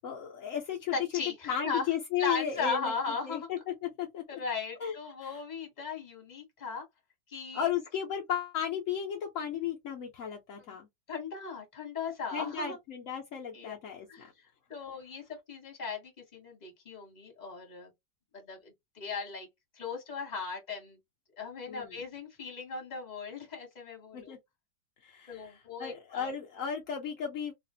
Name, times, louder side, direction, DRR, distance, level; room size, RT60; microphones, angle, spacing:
voice 1, 0.0-2.9 3.2-4.2 4.8-4.9 5.2-5.3 7.5-10.9 12.3-14.1 21.7-22.0 24.1-24.4 25.0-25.5 25.8-27.5, left 8 dB, 75° left, 0.7 m, -34 dB
voice 2, 0.9-1.9 2.2-3.5 4.3-6.8 7.3-7.7 11.1-12.8 13.5-13.8 14.1-14.3 14.7-17.9 18.3-19.5 19.7-21.0 21.4-24.3 25.3-26.3, left 5 dB, 25° left, 1.1 m, -37 dB
3.2 x 2.4 x 2.7 m
omnidirectional pair, 2.2 m